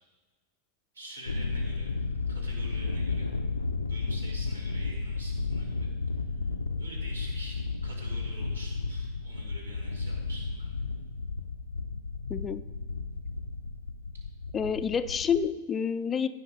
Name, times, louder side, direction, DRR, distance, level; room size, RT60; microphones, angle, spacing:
voice 1, 0.9-1.9 2.3-3.3 3.9-5.9 6.2-6.3 6.8-10.8, right 1 dB, 75° right, -2 dB, 3.2 m, -46 dB
Thunder, 1.3-15.5, left 4 dB, 80° left, 0.5 m, -33 dB
voice 2, 12.3-12.6 14.5-16.3, left 7 dB, 20° left, 13 dB, 0.4 m, -28 dB
15.0 x 5.8 x 5.0 m, 1.3 s
figure-of-eight pair, 90°, 0 cm